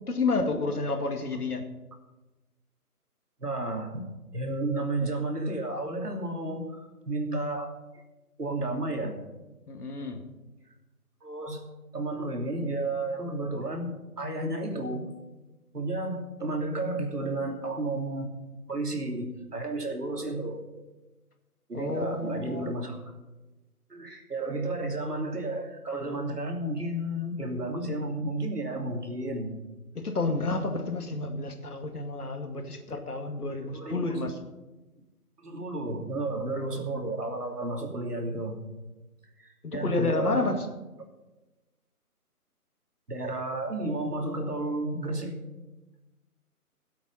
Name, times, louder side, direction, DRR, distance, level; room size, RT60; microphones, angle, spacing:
voice 1, 0.1-1.6 9.7-10.2 21.7-22.7 30.0-34.4 39.6-40.7, left 3 dB, 75° left, 5 dB, 2.2 m, -30 dB
voice 2, 3.4-4.1 4.3-7.7 8.4-9.2 11.2-15.1 15.7-18.3 18.7-20.6 21.7-23.0 23.9-29.6 33.5-34.3 35.4-38.6 39.4-40.5 43.1-45.4, right 2 dB, 85° right, 2 dB, 3.1 m, -32 dB
16.0 x 8.2 x 5.6 m, 1.1 s
figure-of-eight pair, 155°, 46 cm